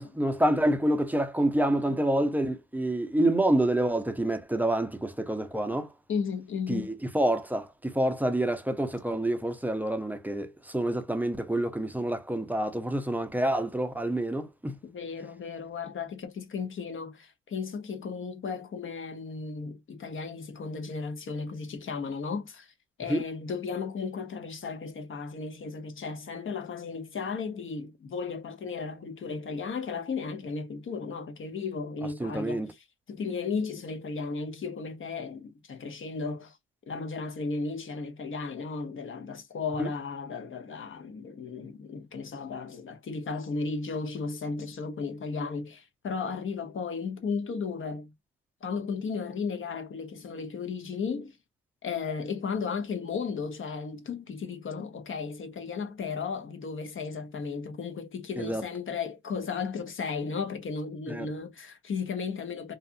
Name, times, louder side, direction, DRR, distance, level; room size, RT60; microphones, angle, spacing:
voice 1, 0.0-5.9 6.7-14.8 23.1-23.2 32.2-32.7 39.8-39.9 58.4-58.6 61.1-61.3, right 1 dB, 5° right, 0.5 m, -27 dB
voice 2, 6.1-6.9 14.8-22.7 23.0-36.6 36.9-48.1 48.6-51.4 51.8-62.8, left 5 dB, 40° left, 0.8 m, -35 dB
2.8 x 2.4 x 2.4 m
cardioid pair, 90°, 30 cm